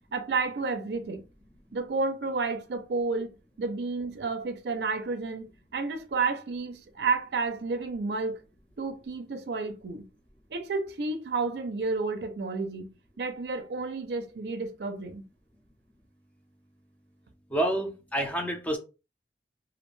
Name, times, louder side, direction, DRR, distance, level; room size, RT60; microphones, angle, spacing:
voice 1, 0.1-1.2 1.7-8.4 8.8-10.1 10.5-12.9 13.2-15.3, right 4 dB, 65° right, 0.5 m, -31 dB
voice 2, 17.5-18.8, right 1 dB, 10° left, 0.4 m, -28 dB
2.4 x 2.1 x 3.1 m
head